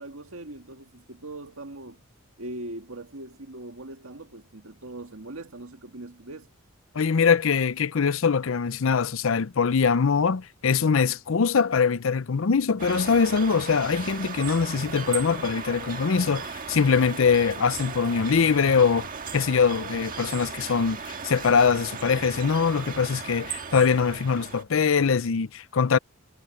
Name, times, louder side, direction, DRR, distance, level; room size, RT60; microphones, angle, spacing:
voice 1, 0.0-2.0 2.4-6.5, right 2 dB, 80° right, 2.0 m, -40 dB
voice 2, 6.9-19.1 19.3-26.0, left 5 dB, 70° left, 0.6 m, -23 dB
sound 1, 12.8-24.6, right 5 dB, 45° right, 1.6 m, -36 dB
head